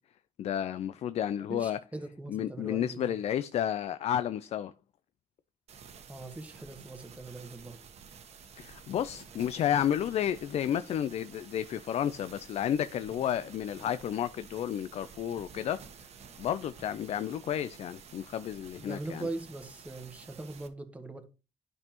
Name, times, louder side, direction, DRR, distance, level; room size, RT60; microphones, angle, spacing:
voice 1, 0.4-1.8 2.3-4.7 8.5-15.8 16.4-19.3, left 10 dB, 65° left, 0.4 m, -31 dB
voice 2, 1.5-3.2 6.1-7.8 13.2-13.4 18.8-21.3, right 2 dB, 10° right, 1.3 m, -41 dB
sound 1, 5.7-20.7, right 6 dB, 70° right, 1.1 m, -51 dB
11.0 x 5.4 x 2.9 m
cardioid pair, 105°, 11 cm